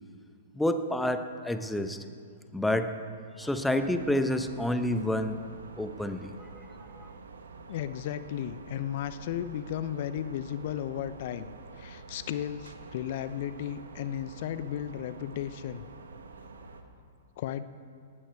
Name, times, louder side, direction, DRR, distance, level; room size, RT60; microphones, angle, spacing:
voice 1, 0.5-2.0 2.5-3.0 3.4-5.4 5.8-7.1, left 1 dB, 5° left, 9 dB, 0.8 m, -29 dB
sound 1, 3.4-16.8, right 4 dB, 75° right, 1.3 m, -48 dB
voice 2, 7.7-11.5 11.8-15.9 17.4-17.6, left 10 dB, 55° left, 13 dB, 0.6 m, -34 dB
18.5 x 12.0 x 4.7 m, 2.3 s
hypercardioid pair, 115°, 0 cm